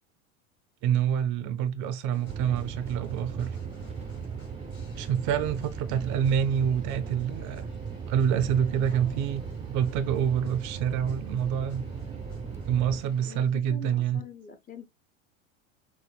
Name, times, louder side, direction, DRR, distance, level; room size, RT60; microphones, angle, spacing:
voice 1, 0.8-3.6 5.0-7.6 8.1-11.8 12.7-14.2, right 8 dB, 45° right, 0.8 m, -27 dB
sound 1, 2.1-13.5, left 1 dB, 90° left, 2.7 m, -53 dB
sound 2, 2.3-13.0, right 6 dB, 15° right, 0.6 m, -37 dB
voice 2, 8.9-9.4 13.2-14.9, left 5 dB, 20° left, 0.7 m, -46 dB
6.2 x 2.1 x 3.3 m
hypercardioid pair, 90°, 40 cm